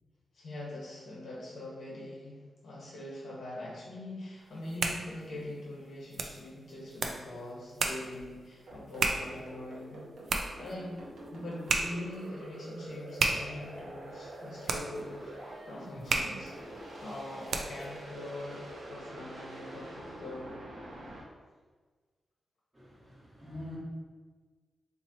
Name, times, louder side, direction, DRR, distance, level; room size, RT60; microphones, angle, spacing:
voice 1, 0.3-11.0 11.3-15.3 15.6-20.6, left 1 dB, 65° left, -5 dB, 1.0 m, -43 dB
sound 1, 4.5-17.9, right 3 dB, 60° right, 0.3 m, -36 dB
sound 2, 8.7-21.2, right 1 dB, 75° right, 0.8 m, -46 dB
sound 3, 14.8-20.9, left 1 dB, 45° left, 1.0 m, -54 dB
voice 2, 22.7-23.8, left 1 dB, 15° right, -8 dB, 1.0 m, -45 dB
2.9 x 2.8 x 3.9 m, 1.4 s
wide cardioid pair, 170°, 0 cm